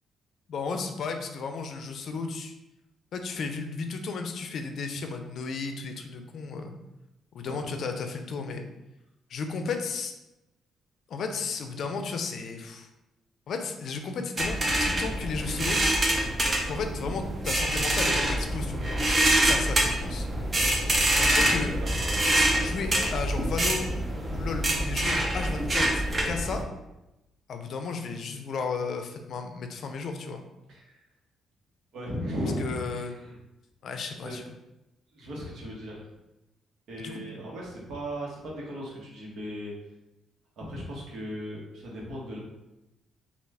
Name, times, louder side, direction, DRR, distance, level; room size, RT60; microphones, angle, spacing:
voice 1, 0.5-2.5 3.1-6.7 7.3-8.6 9.3-10.1 11.1-12.9 13.5-15.8 16.7-20.3 21.1-21.7 22.6-23.9 24.3-26.6 27.5-30.4 32.6-33.1 33.8-34.4 37.0-37.2, left 4 dB, 65° left, 5 dB, 0.4 m, -34 dB
sound 1, 14.4-26.6, right 1 dB, 30° right, 0.7 m, -26 dB
voice 2, 21.2-22.6 30.7-31.0 31.9-33.3 34.2-34.4 35.1-36.0 36.9-39.7 40.6-42.4, equal, 70° right, -3 dB, 1.1 m, -37 dB
3.4 x 2.4 x 3.3 m, 0.97 s
cardioid pair, 90°, 0 cm